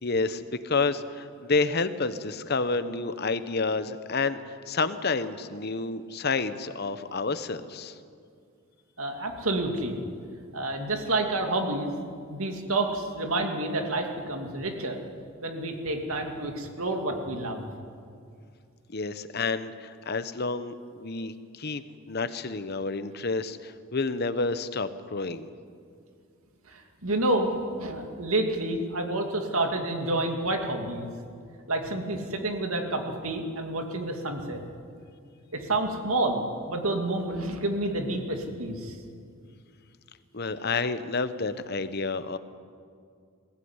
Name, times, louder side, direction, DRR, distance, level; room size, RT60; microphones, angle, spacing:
voice 1, 0.0-7.9 18.9-21.8 22.1-25.5 40.3-42.4, left 3 dB, 50° left, 12 dB, 1.0 m, -29 dB
voice 2, 9.0-9.9 10.5-11.9 12.3-15.0 15.4-17.7 26.7-31.1 31.7-34.6 35.5-39.0, right 2 dB, 80° right, 4 dB, 2.6 m, -29 dB
22.0 x 15.0 x 9.7 m, 2.3 s
head